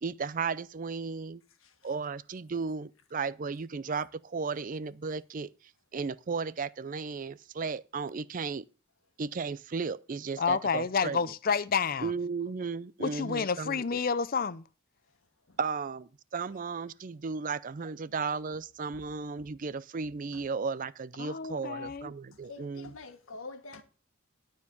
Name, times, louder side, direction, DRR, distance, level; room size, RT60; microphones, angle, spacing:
voice 1, 0.0-1.4 1.8-5.5 5.9-8.7 9.2-11.2 12.0-14.0 15.6-22.9, right 5 dB, 40° right, 0.4 m, -35 dB
voice 2, 10.4-12.1 13.0-14.6 21.2-22.1, left 5 dB, 45° left, 0.5 m, -29 dB
voice 3, 22.3-23.8, left 3 dB, 75° left, 1.5 m, -47 dB
12.5 x 4.5 x 6.9 m
head